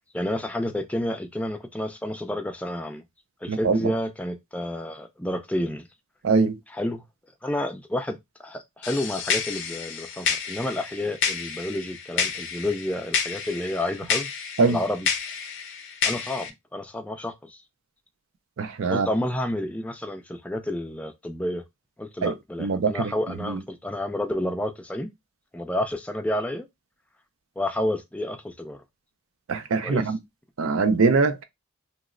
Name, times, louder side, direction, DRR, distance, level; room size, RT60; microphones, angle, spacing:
voice 1, 0.1-3.0 3.4-5.9 6.7-7.0 7.4-14.3 14.7-15.1 16.0-17.6 18.9-21.6 22.0-25.1 25.5-26.7 27.6-28.8 29.8-30.1, left 1 dB, 5° left, 0.3 m, -30 dB
voice 2, 3.5-3.8 6.2-6.6 14.6-14.8 18.6-19.1 22.2-22.3 22.6-23.1 23.5-23.6 29.5-30.2 30.6-31.4, right 4 dB, 60° right, 0.4 m, -22 dB
sound 1, 8.8-16.5, left 6 dB, 55° left, 0.6 m, -30 dB
2.9 x 2.0 x 3.6 m
head